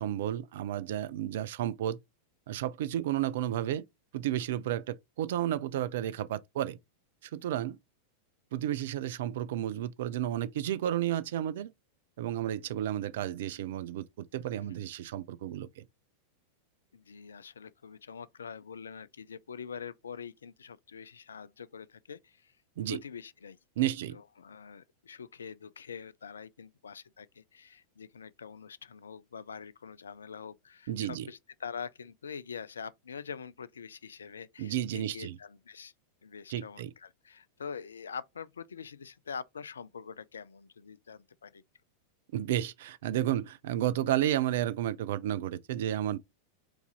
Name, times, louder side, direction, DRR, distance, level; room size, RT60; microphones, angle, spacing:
voice 1, 0.0-2.0 2.5-3.8 4.1-6.8 7.3-7.8 8.5-11.7 12.2-15.8 22.8-23.0 23.8-24.2 30.9-31.3 34.6-35.4 36.5-36.9 42.3-46.2, right 12 dB, 55° right, 0.4 m, -32 dB
voice 2, 16.9-22.5 22.9-23.6 23.9-35.9 36.2-41.6, left 6 dB, 70° left, 0.3 m, -45 dB
4.6 x 2.6 x 3.9 m
figure-of-eight pair, 90°, 0 cm